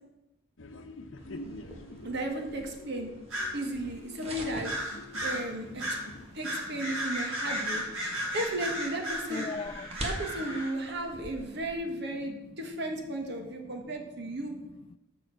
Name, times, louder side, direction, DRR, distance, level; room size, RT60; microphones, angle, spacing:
sound 1, 0.6-6.3, left 1 dB, 65° left, 0.9 m, -46 dB
sound 2, 1.2-11.7, right 1 dB, 30° right, 1.3 m, -46 dB
voice 1, 2.0-3.1 3.5-4.7 5.2-6.0 6.3-7.8 8.3-9.5 10.0-14.5, right 1 dB, 55° right, 3 dB, 1.5 m, -34 dB
sound 3, 3.3-3.6 4.6-5.4 5.8-6.0 6.4-10.7, equal, 80° right, 3.7 m, -34 dB
voice 2, 6.3-7.0 7.5-7.6 8.0-8.4 9.3-10.0 10.4-10.5 12.2-12.6 13.1-13.2 13.4-15.0, left 4 dB, 25° left, 12 dB, 0.3 m, -44 dB
7.0 x 6.4 x 7.6 m, 0.98 s
head